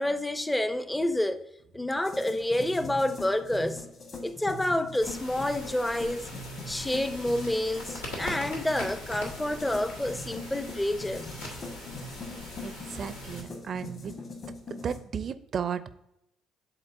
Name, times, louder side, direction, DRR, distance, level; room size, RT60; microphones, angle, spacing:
voice 1, 0.0-1.4 1.7-3.8 4.2-6.3 6.7-11.4, left 1 dB, 10° left, 0.5 m, -28 dB
sound 1, 2.0-15.0, left 2 dB, 50° left, 1.6 m, -42 dB
sound 2, 5.0-13.4, left 1 dB, 85° left, 1.5 m, -41 dB
voice 2, 12.6-14.2 14.7-15.9, right 7 dB, 45° right, 0.5 m, -34 dB
11.0 x 4.1 x 2.6 m
figure-of-eight pair, 50°, 0 cm